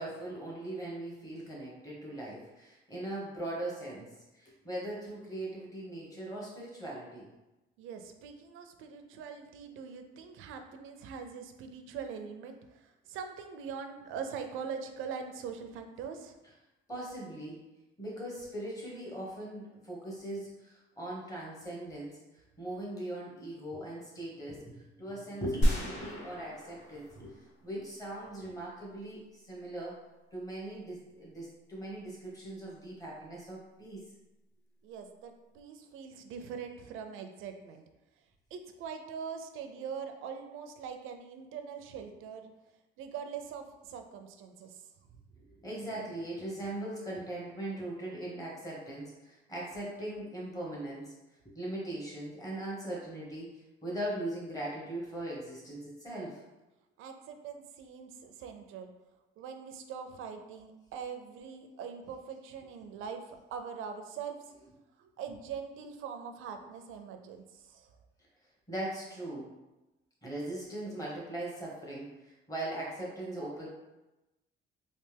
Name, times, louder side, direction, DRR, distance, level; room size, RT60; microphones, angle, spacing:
voice 1, 0.0-7.3 16.9-17.6 18.0-22.2 22.6-30.0 30.3-34.0 45.4-51.1 51.5-56.4 68.7-69.5 70.2-73.7, right 1 dB, 15° left, -5 dB, 1.1 m, -40 dB
voice 2, 7.8-16.3 34.8-37.8 38.5-42.5 43.0-44.8 57.0-58.9 59.4-64.4 65.0-67.9, right 6 dB, 90° right, 6 dB, 0.5 m, -42 dB
sound 1, 25.6-27.9, equal, 80° left, 1.0 m, -31 dB
3.2 x 2.8 x 3.3 m, 1.0 s
cardioid pair, 155°, 20 cm